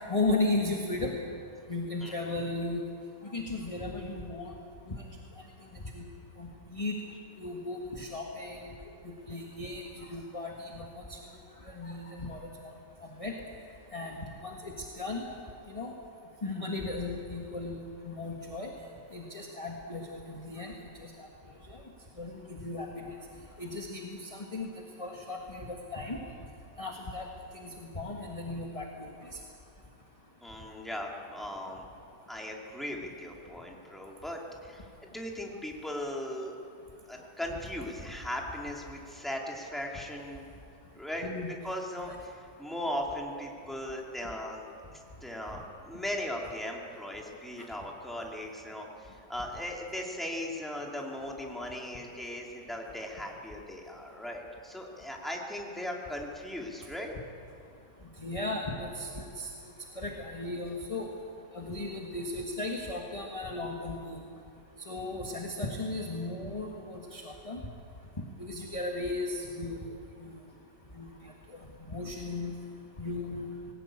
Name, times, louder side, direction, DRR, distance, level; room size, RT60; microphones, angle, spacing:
voice 1, 0.1-1.1 1.7-2.8 3.2-4.5 4.9-5.0 5.9-6.0 6.4-7.0 7.4-8.7 9.3-9.8 10.1-10.9 11.7-12.5 13.2-13.3 13.9-15.2 15.7-15.9 16.4-17.8 18.0-18.7 19.1-20.0 20.3-20.7 21.0-21.3 22.2-22.3 22.6-23.1 23.6-24.7 25.0-26.2 26.8-27.2 27.6-29.1 41.2-41.5 42.1-42.2 47.6-47.7 58.2-59.5 60.0-61.1 61.5-64.2 64.9-67.6 68.4-69.8 70.2-70.3 70.9-71.1 71.9-72.5 73.0-73.5, left 2 dB, 20° left, 0 dB, 1.6 m, -35 dB
voice 2, 30.4-31.8 32.3-36.5 37.1-40.5 41.0-41.3 41.6-44.7 44.9-57.1, left 1 dB, ahead, -1 dB, 2.5 m, -38 dB
19.5 x 18.0 x 8.8 m, 2.5 s
omnidirectional pair, 1.9 m